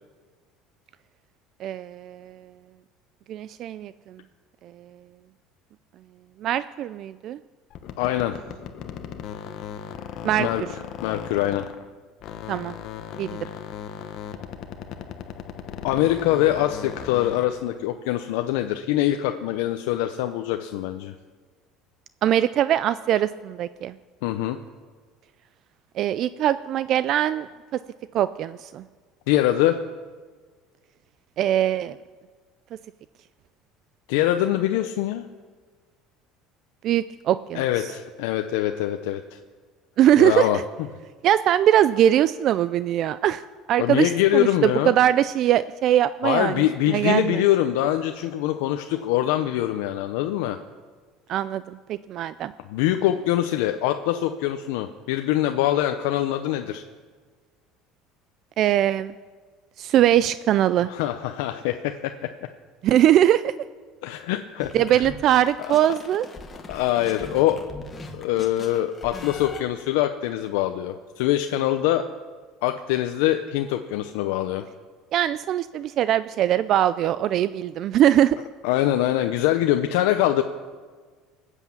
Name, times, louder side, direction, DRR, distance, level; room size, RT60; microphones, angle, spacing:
voice 1, 1.6-2.4 3.3-4.2 4.8-4.9 6.4-7.4 10.2-10.5 12.5-12.8 13.2-13.5 22.2-24.0 26.0-27.5 27.7-27.8 28.1-28.8 31.4-32.0 36.8-37.9 40.0-40.5 41.2-47.4 51.3-52.5 58.6-59.1 59.8-60.9 62.8-63.5 64.7-66.3 75.1-78.4, right 11 dB, 45° right, 15 dB, 0.3 m, -21 dB
sound 1, 7.7-11.9 12.2-17.6, left 8 dB, 50° left, 1.0 m, -37 dB
voice 2, 8.0-8.4 10.4-10.6 11.0-11.7 15.8-21.1 24.2-24.6 29.3-29.8 34.1-35.3 37.5-39.4 40.2-40.6 43.8-44.9 46.2-50.6 52.7-56.8 60.9-62.3 64.0-65.0 65.9-66.0 66.7-67.6 68.1-72.0 72.6-74.7 78.6-80.4, left 13 dB, 85° left, 6 dB, 0.7 m, -24 dB
sound 2, 64.6-69.6, left 3 dB, 20° left, 1.5 m, -40 dB
19.5 x 8.2 x 7.3 m, 1.5 s
cardioid pair, 140°, 0 cm